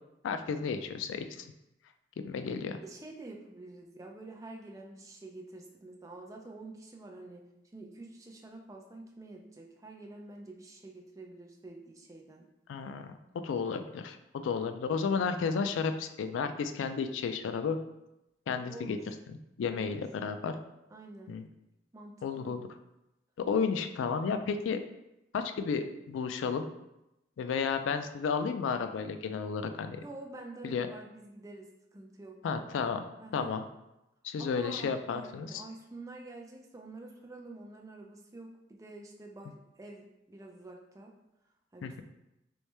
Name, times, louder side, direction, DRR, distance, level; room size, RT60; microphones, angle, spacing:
voice 1, 0.2-1.5 2.2-2.8 12.7-13.1 13.4-17.8 18.5-19.0 19.3-20.6 21.3-21.4 22.2-22.7 23.5-24.8 25.3-26.7 27.4-30.0 30.6-30.9 32.4-33.0 33.3-33.6 34.2-35.6 41.8-42.0, left 5 dB, 90° left, 9 dB, 0.3 m, -32 dB
voice 2, 2.8-7.5 7.7-12.5 18.7-19.1 19.7-20.0 20.9-21.3 21.9-22.6 30.0-32.4 33.2-33.5 34.4-41.2 41.7-42.0, right 2 dB, 15° right, 1 dB, 0.4 m, -48 dB
3.1 x 3.1 x 3.2 m, 0.90 s
head